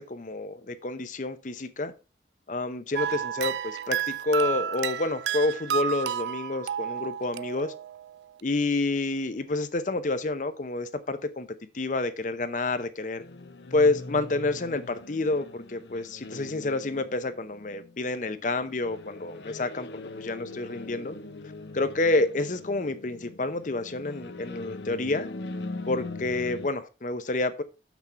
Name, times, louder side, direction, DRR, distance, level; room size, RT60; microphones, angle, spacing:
voice 1, 0.0-1.9 2.5-7.7 8.4-11.5 11.7-13.2 13.7-21.2 21.7-25.3 25.9-27.6, left 2 dB, 45° left, 0.7 m, -29 dB
sound 1, 3.0-8.1, right 9 dB, 70° right, 0.3 m, -31 dB
sound 2, 13.2-26.7, left 2 dB, 80° left, 0.9 m, -41 dB
7.0 x 6.1 x 4.4 m
head